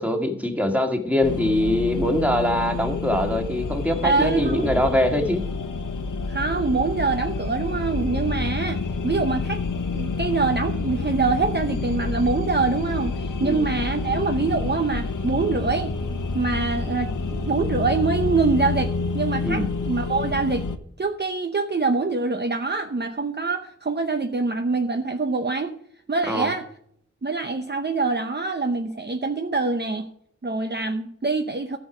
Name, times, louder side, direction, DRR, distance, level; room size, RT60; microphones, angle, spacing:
voice 1, 0.0-5.4 13.4-13.6 19.4-19.7 26.3-26.5, left 1 dB, 5° right, 3 dB, 2.1 m, -23 dB
sound 1, 1.2-20.8, left 3 dB, 80° left, 1.0 m, -28 dB
voice 2, 4.0-4.7 6.3-9.6 9.9-15.9 16.3-20.6 21.0-25.7 26.1-26.6 27.2-30.1 30.4-31.8, right 3 dB, 35° right, 6 dB, 0.8 m, -25 dB
14.0 x 6.6 x 6.1 m, 0.67 s
wide cardioid pair, 85°, 31 cm